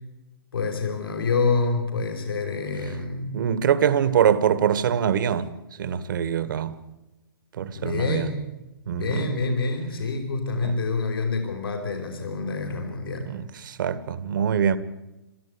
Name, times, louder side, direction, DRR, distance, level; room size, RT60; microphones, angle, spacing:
voice 1, 0.5-3.3 7.7-8.4 8.9-13.3, left 4 dB, 70° left, 4.9 m, -27 dB
voice 2, 3.3-5.5 5.8-6.8 7.6-8.3 8.9-9.4 10.6-10.8 13.3-14.8, right 8 dB, 55° right, 1.7 m, -24 dB
27.5 x 14.0 x 8.6 m
figure-of-eight pair, 125°, 12 cm